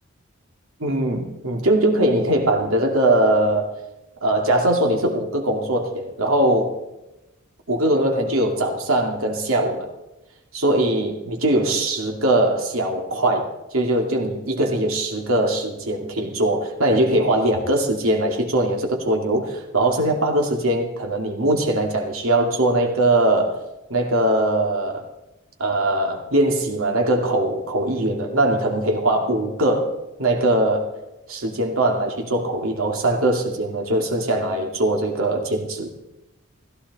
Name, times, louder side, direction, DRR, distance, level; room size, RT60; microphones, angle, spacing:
voice 1, 0.8-3.7 4.2-6.7 7.7-9.9 10.5-13.5 13.7-23.5 23.9-25.1 25.6-30.9 31.3-35.9, right 1 dB, 80° right, 2 dB, 2.5 m, -21 dB
16.0 x 15.0 x 4.1 m, 0.97 s
head